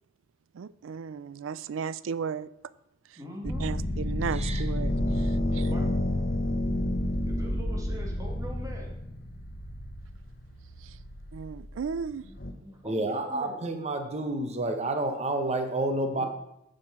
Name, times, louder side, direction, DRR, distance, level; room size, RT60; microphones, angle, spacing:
voice 1, 0.5-2.7 3.1-3.2 3.6-5.7 10.8-11.0 11.3-12.3, right 6 dB, 75° right, 0.4 m, -35 dB
voice 2, 3.2-3.7 5.5-6.0 7.3-9.0 12.2-13.7 16.1-16.3, equal, 15° right, 1.7 m, -42 dB
sound 1, 3.4-12.5, left 1 dB, 50° left, 1.1 m, -30 dB
voice 3, 12.8-16.3, right 2 dB, 35° right, 1.0 m, -29 dB
9.6 x 5.3 x 5.9 m
head